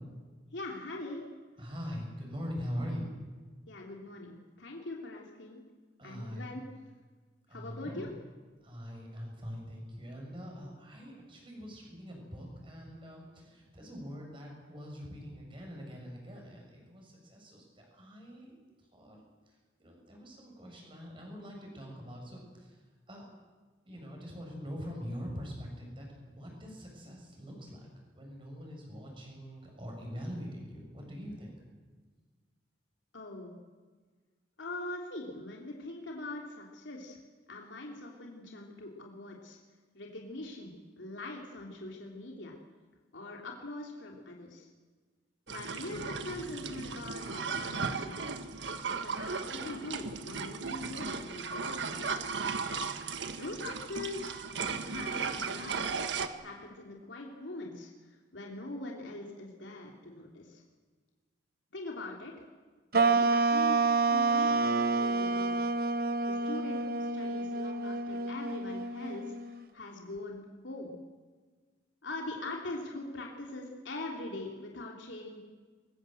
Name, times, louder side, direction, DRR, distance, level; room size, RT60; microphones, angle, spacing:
voice 1, 0.5-1.2 3.7-5.6 6.0-6.6 7.5-8.1 33.1-33.5 34.6-37.2 37.5-39.6 39.9-42.6 43.1-44.7 45.5-48.4 49.0-52.1 53.4-55.9 56.4-57.9 58.3-60.6 61.7-62.3 63.1-65.6 66.3-70.9 72.0-75.4, left 2 dB, 85° left, 0 dB, 3.1 m, -42 dB
voice 2, 1.6-3.1 6.0-6.5 7.5-8.1 8.6-18.5 18.9-19.2 19.8-22.8 23.1-23.3 23.9-27.8 28.1-31.6, equal, 30° right, 0 dB, 7.3 m, -43 dB
sound 1, 45.5-56.3, right 5 dB, 80° right, 1.5 m, -36 dB
sound 2, 62.9-69.6, right 3 dB, 50° right, 0.9 m, -28 dB
23.5 x 21.5 x 7.9 m, 1.4 s
head